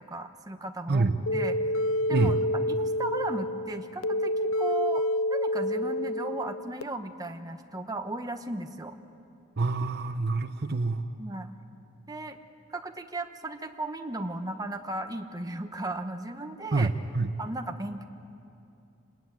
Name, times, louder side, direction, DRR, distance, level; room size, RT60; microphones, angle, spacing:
voice 1, 0.0-1.8 2.1-2.3 2.7-5.0 5.3-8.9 11.2-11.5 12.1-12.4 12.7-16.9 17.4-18.0, right 2 dB, 20° right, 6 dB, 1.1 m, -36 dB
sound 1, 1.3-6.8, left 1 dB, 75° left, 0.6 m, -28 dB
voice 2, 9.6-11.1 16.7-17.3, right 3 dB, 55° right, 9 dB, 0.8 m, -26 dB
26.5 x 20.0 x 9.3 m, 2.7 s
head